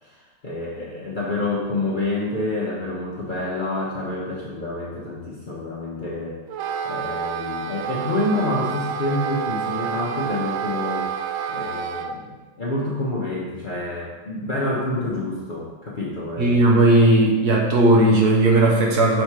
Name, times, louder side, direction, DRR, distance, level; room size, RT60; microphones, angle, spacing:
voice 1, 0.0-6.4 6.8-11.1 11.5-16.6, left 2 dB, 35° left, -6 dB, 0.9 m, -28 dB
Wind instrument woodwind instrument, 6.5-12.1, right 7 dB, 85° right, 0.7 m, -29 dB
voice 2, 16.4-19.2, right 1 dB, 60° right, -1 dB, 1.4 m, -16 dB
6.5 x 4.3 x 4.8 m, 1.2 s
omnidirectional pair, 2.0 m